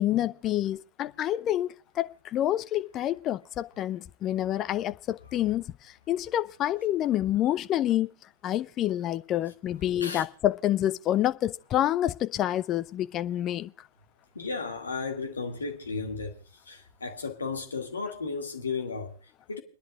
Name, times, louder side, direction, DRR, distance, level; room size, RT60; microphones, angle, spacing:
voice 1, 0.0-8.1 8.4-13.7, left 12 dB, 30° left, 0.6 m, -28 dB
voice 2, 14.3-19.6, left 4 dB, 75° left, 2.1 m, -34 dB
30.0 x 10.5 x 2.4 m
figure-of-eight pair, 90°, 0 cm